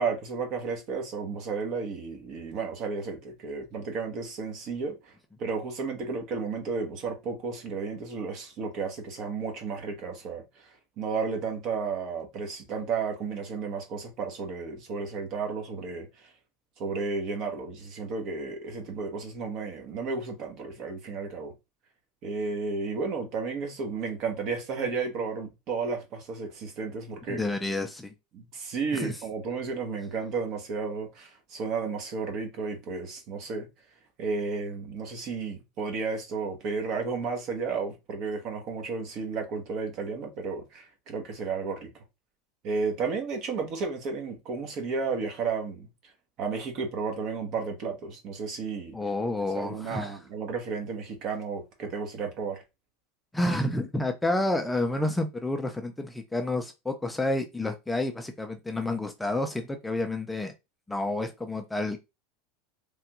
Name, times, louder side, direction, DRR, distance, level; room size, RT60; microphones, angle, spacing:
voice 1, 0.0-5.1 5.4-10.7 11.0-16.3 16.8-21.5 22.2-27.4 28.3-33.7 34.2-42.0 42.6-45.9 46.4-48.9 49.6-52.6, right 4 dB, 50° right, 1.1 m, -33 dB
voice 2, 27.3-28.1 28.9-29.2 48.9-50.2 53.3-60.5 60.9-62.0, left 2 dB, 5° left, 0.4 m, -29 dB
3.3 x 2.3 x 2.9 m
supercardioid pair, 125°, 0 cm